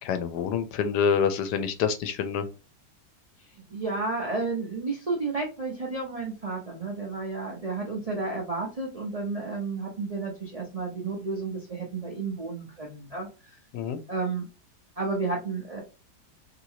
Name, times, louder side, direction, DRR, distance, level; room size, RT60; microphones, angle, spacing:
voice 1, 0.0-2.4 13.7-14.0, left 7 dB, 75° left, 10 dB, 1.1 m, -26 dB
voice 2, 3.7-13.3 14.1-14.5 15.0-15.8, right 3 dB, 70° right, -2 dB, 0.3 m, -31 dB
3.0 x 2.8 x 2.8 m, 0.32 s
omnidirectional pair, 1.9 m